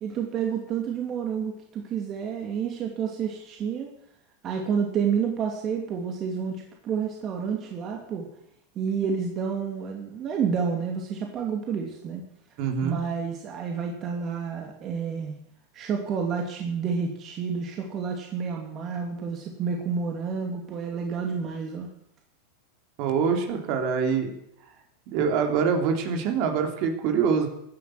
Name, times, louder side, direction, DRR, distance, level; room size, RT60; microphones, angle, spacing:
voice 1, 0.0-3.9 4.4-8.3 8.8-12.2 12.8-15.3 15.7-21.9, right 6 dB, 40° right, 2 dB, 2.6 m, -29 dB
voice 2, 12.6-13.0 23.0-24.3 25.1-27.5, right 6 dB, 55° right, 4 dB, 3.3 m, -24 dB
16.5 x 9.9 x 7.8 m, 0.76 s
hypercardioid pair, 100°, 0 cm